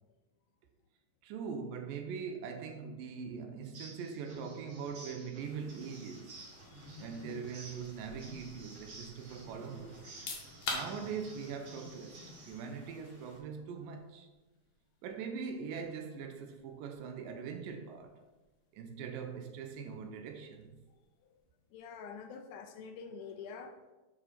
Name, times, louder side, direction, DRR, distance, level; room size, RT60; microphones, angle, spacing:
voice 1, 1.2-6.4 7.0-10.0 10.7-14.3 15.0-18.2 18.7-20.8, right 6 dB, 85° right, 2.3 m, -42 dB
sound 1, 3.6-12.7, right 1 dB, 50° right, 2.3 m, -51 dB
Stream, 5.4-13.4, left 1 dB, 30° left, 1.4 m, -61 dB
sound 2, 10.0-22.7, left 3 dB, 60° left, 1.8 m, -49 dB
voice 2, 21.7-23.8, left 5 dB, 75° left, 1.9 m, -46 dB
7.6 x 4.9 x 4.2 m
omnidirectional pair, 4.1 m